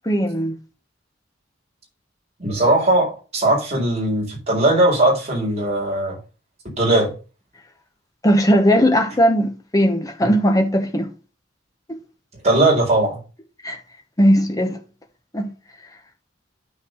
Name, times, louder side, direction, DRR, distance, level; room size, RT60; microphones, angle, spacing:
voice 1, 0.0-0.5 8.2-11.1 11.9-12.0 13.6-13.8 14.2-14.8 15.3-15.5, equal, 20° left, 1.1 m, -18 dB
voice 2, 2.4-6.2 6.8-7.1 12.4-13.2, right 1 dB, 35° right, 4.4 m, -19 dB
9.8 x 4.5 x 6.4 m
head